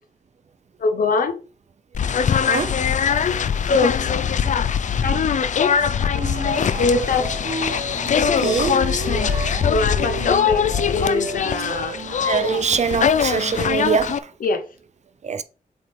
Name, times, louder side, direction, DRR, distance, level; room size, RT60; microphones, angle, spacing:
voice 1, 0.8-1.4 3.7-4.1 5.0-5.2 6.8-7.4 9.7-12.0 14.4-14.6, left 3 dB, 75° left, 1.1 m, -22 dB
sound 1, 1.9-14.2, left 7 dB, 60° left, 0.5 m, -22 dB
voice 2, 2.4-3.2 4.4-4.7 5.7-6.8 8.2-9.6 12.0-14.3 15.2-15.4, right 6 dB, 50° right, 0.7 m, -26 dB
sound 2, 6.1-12.2, right 5 dB, 70° right, 1.0 m, -32 dB
7.7 x 4.5 x 3.7 m
wide cardioid pair, 120°, 15 cm